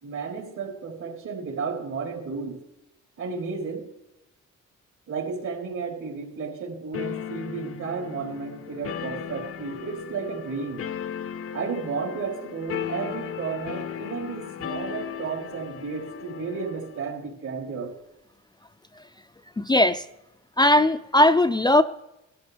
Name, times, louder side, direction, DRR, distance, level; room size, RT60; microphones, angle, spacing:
voice 1, 0.0-2.6 3.2-3.9 5.1-10.8 11.5-17.9, right 5 dB, 70° right, 0 dB, 3.9 m, -33 dB
sound 1, 6.9-17.0, left 9 dB, 50° left, 0.7 m, -36 dB
voice 2, 19.6-20.1 20.6-21.8, left 1 dB, 15° left, 9 dB, 0.5 m, -19 dB
16.5 x 13.5 x 3.4 m, 0.89 s
cardioid pair, 90°, 30 cm